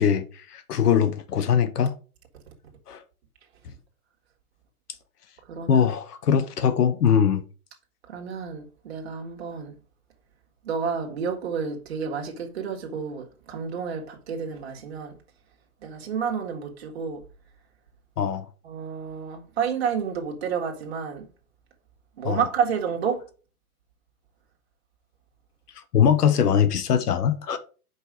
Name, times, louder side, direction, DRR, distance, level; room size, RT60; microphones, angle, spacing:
voice 1, 0.0-1.9 2.9-3.0 5.7-7.4 18.2-18.4 22.2-22.4 25.9-27.6, left 8 dB, 80° left, 1.1 m, -21 dB
voice 2, 5.5-5.9 8.1-9.7 10.6-15.2 15.8-17.2 18.6-21.3 22.2-23.3, right 6 dB, 45° right, 1.5 m, -30 dB
5.3 x 4.8 x 4.9 m
hypercardioid pair, 175°, 45 cm